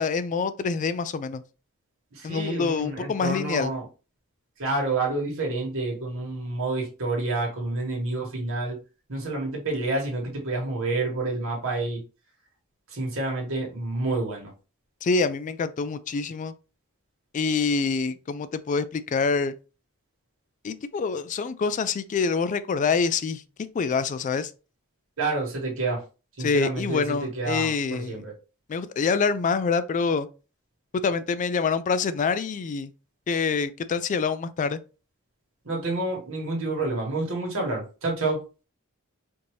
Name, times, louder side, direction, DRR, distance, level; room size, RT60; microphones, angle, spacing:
voice 1, 0.0-1.4 2.2-3.7 15.0-16.5 17.3-19.5 20.6-23.4 23.7-24.5 26.4-28.2 28.7-30.3 31.0-32.9 33.3-34.8, left 5 dB, 35° left, 0.3 m, -26 dB
voice 2, 2.1-3.8 4.6-8.8 9.1-12.0 12.9-14.5 25.2-26.0 26.4-28.3 35.6-38.4, right 2 dB, 65° right, 1.5 m, -29 dB
4.4 x 2.7 x 3.1 m
head